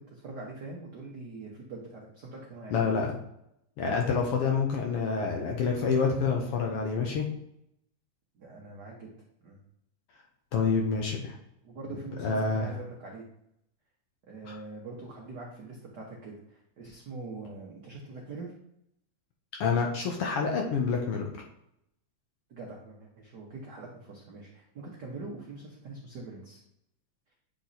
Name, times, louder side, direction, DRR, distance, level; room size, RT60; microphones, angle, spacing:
voice 1, 0.0-2.9 8.3-9.1 9.4-9.6 11.6-13.2 14.3-18.5 22.5-26.6, right 3 dB, 80° right, -2 dB, 0.9 m, -43 dB
voice 2, 2.7-3.1 3.8-7.3 10.5-11.4 12.2-12.7 14.4-14.6 19.6-21.3, left 5 dB, 70° left, 1 dB, 1.5 m, -27 dB
8.7 x 3.1 x 4.0 m, 0.77 s
omnidirectional pair, 3.3 m